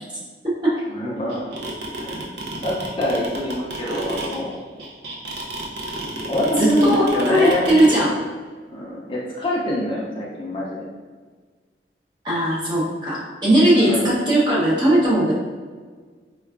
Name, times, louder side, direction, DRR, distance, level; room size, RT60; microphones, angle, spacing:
voice 1, 0.9-1.5 2.0-4.6 6.3-7.7 8.7-10.8 13.7-14.1, left 1 dB, 30° left, -5 dB, 0.4 m, -25 dB
sound 1, 1.3-8.0, right 2 dB, 80° right, 0.6 m, -30 dB
voice 2, 6.6-8.2 12.2-15.3, right 1 dB, 25° right, -7 dB, 0.8 m, -18 dB
4.5 x 2.2 x 2.4 m, 1.5 s
head